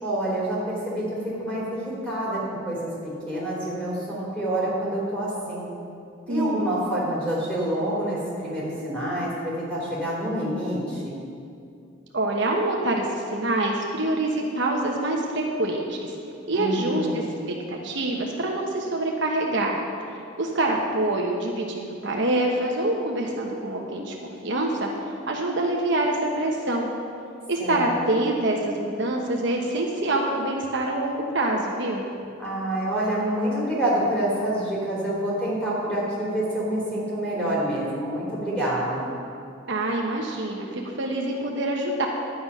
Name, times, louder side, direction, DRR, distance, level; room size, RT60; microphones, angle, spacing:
voice 1, 0.0-5.7 6.3-11.3 16.5-17.2 27.6-27.8 32.4-39.2, right 1 dB, 5° left, -6 dB, 3.2 m, -27 dB
voice 2, 6.3-6.7 12.1-16.1 16.5-17.2 17.7-19.8 20.1-24.9 25.3-26.9 27.5-32.0 39.7-42.1, right 2 dB, 60° right, 0 dB, 1.1 m, -26 dB
11.5 x 8.6 x 5.5 m, 2.5 s
head